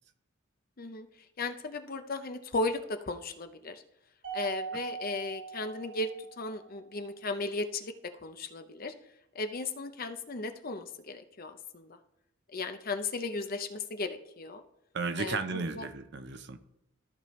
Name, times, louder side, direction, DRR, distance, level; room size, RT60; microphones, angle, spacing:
voice 1, 1.4-3.8 4.3-7.9 8.2-8.9 9.3-12.0 12.5-14.6 15.2-15.9, left 3 dB, 45° left, 8 dB, 0.7 m, -36 dB
Mallet percussion, 4.2-6.7, right 6 dB, 85° right, 2.7 m, -41 dB
voice 2, 14.9-16.6, right 4 dB, 55° right, 10 dB, 0.7 m, -34 dB
13.5 x 5.1 x 3.2 m, 0.88 s
head